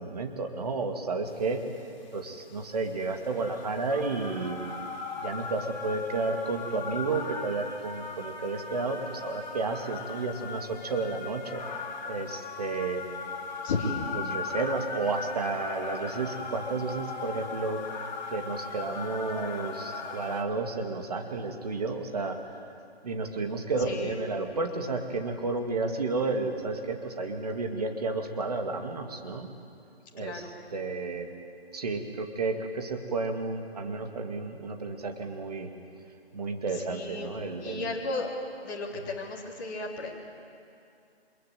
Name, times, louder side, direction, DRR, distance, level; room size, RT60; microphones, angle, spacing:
voice 1, 0.0-1.6 2.1-4.6 5.2-11.6 12.0-13.0 14.3-17.8 18.3-22.6 23.0-29.5 30.1-30.4 30.7-31.3 31.7-35.7 36.3-37.9, right 3 dB, 40° right, 4 dB, 2.3 m, -32 dB
sound 1, 1.5-20.4, left 4 dB, 45° left, 2.4 m, -38 dB
voice 2, 13.6-14.1 23.8-24.2 30.2-30.5 36.7-37.3 37.6-38.3 38.6-40.1, left 3 dB, 20° left, -4 dB, 3.4 m, -34 dB
26.0 x 21.5 x 9.3 m, 2.4 s
figure-of-eight pair, 165°, 32 cm